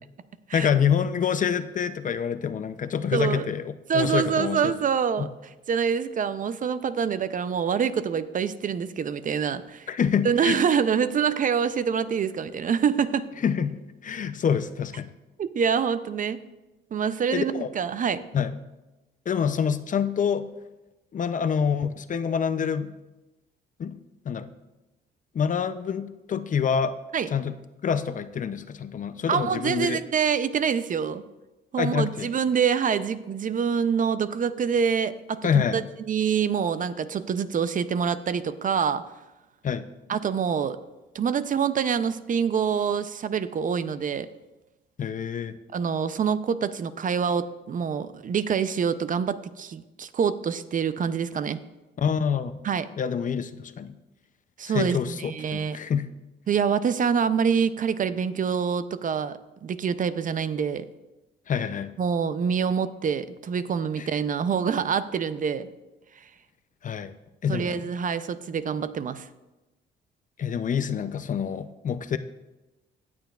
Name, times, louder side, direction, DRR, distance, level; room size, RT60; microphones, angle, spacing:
voice 1, 0.5-4.7 5.2-5.3 9.9-10.6 13.4-15.1 17.3-17.7 18.3-18.6 19.3-20.5 21.1-22.9 23.8-24.0 24.3-24.5 25.3-27.0 27.3-30.0 31.8-32.3 35.4-35.8 39.6-39.9 45.0-45.6 52.0-52.6 53.0-54.0 54.7-56.1 61.5-61.9 64.0-64.1 66.8-67.2 67.4-67.8 70.4-72.2, left 7 dB, 40° left, 12 dB, 0.5 m, -27 dB
voice 2, 3.1-3.5 3.9-5.3 5.7-9.9 10.2-13.3 15.4-16.4 16.9-18.3 27.1-27.3 29.3-31.2 31.7-39.1 40.1-40.8 41.1-44.3 45.7-51.6 52.6-52.9 54.6-55.8 56.5-60.8 62.0-65.7 67.5-69.3, right 7 dB, 40° right, 13 dB, 0.5 m, -26 dB
18.0 x 6.9 x 2.4 m, 1.0 s
cardioid pair, 90°, 20 cm